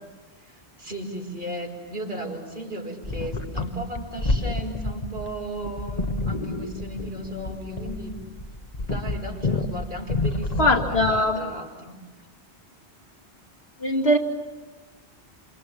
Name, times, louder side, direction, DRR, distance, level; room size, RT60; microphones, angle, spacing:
voice 1, 0.4-8.2 8.8-11.9, right 1 dB, 60° right, 0 dB, 5.3 m, -35 dB
sound 1, 3.0-11.3, left 2 dB, 40° left, 1.4 m, -29 dB
voice 2, 10.6-11.4 13.8-14.2, left 1 dB, 70° left, 1 dB, 2.8 m, -20 dB
28.5 x 27.0 x 7.2 m, 1.2 s
omnidirectional pair, 1.1 m